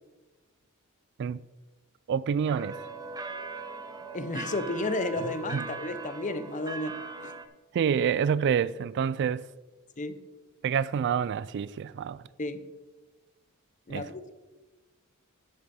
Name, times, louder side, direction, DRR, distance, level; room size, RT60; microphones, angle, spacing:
voice 1, 2.1-2.7 5.5-5.7 7.7-9.4 10.6-12.2 13.9-14.1, right 7 dB, 50° right, 0.3 m, -27 dB
sound 1, 2.5-7.4, right 3 dB, 15° right, 0.8 m, -40 dB
voice 2, 4.1-7.3 10.0-10.2 12.4-12.6 13.9-14.3, left 2 dB, 35° left, 0.7 m, -32 dB
11.0 x 8.1 x 4.2 m
head